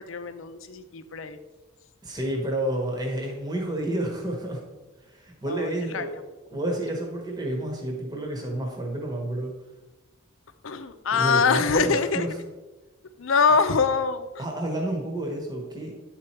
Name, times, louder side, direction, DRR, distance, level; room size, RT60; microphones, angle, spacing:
voice 1, 0.0-1.4 5.5-6.1 10.6-12.3 13.2-14.4, left 5 dB, 75° left, 10 dB, 0.6 m, -24 dB
voice 2, 2.0-4.6 5.1-6.2 6.5-9.5 11.1-12.3 14.4-15.9, right 1 dB, 20° right, 0 dB, 1.2 m, -30 dB
10.5 x 4.4 x 4.4 m, 1.2 s
head